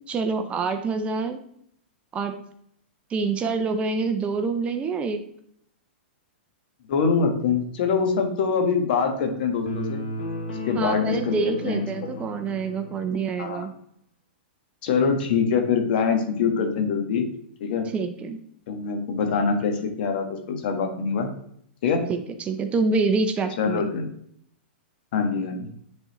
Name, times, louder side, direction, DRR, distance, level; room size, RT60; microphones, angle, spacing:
voice 1, 0.1-1.4 2.1-2.4 3.1-5.2 10.7-13.7 17.9-18.4 22.1-23.9, right 4 dB, 20° right, 7 dB, 0.6 m, -26 dB
voice 2, 6.9-10.0 10.5-11.9 13.4-13.7 14.8-17.2 17.6-17.9 18.7-21.3 21.8-22.0 23.6-24.1 25.1-25.7, left 5 dB, 60° left, 5 dB, 1.4 m, -24 dB
sound 1, 9.7-13.2, left 2 dB, 75° left, 1.5 m, -34 dB
9.8 x 3.9 x 3.0 m, 0.70 s
hypercardioid pair, 135°, 6 cm